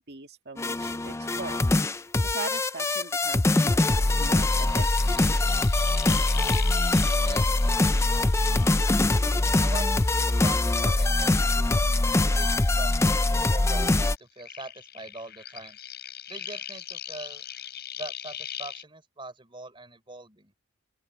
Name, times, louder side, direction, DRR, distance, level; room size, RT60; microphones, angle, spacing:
voice 1, 0.0-1.6 2.2-5.6, right 4 dB, 50° right, 2.0 m, -41 dB
sound 1, 0.6-14.2, left 2 dB, 10° left, 0.3 m, -23 dB
sound 2, 4.0-9.5 9.8-13.2 13.4-18.8, left 10 dB, 50° left, 6.9 m, -41 dB
voice 2, 7.2-7.6 9.5-9.9 10.2-11.8 12.2-15.8 16.3-17.4 17.9-20.5, right 2 dB, 25° right, 3.7 m, -42 dB
open air
head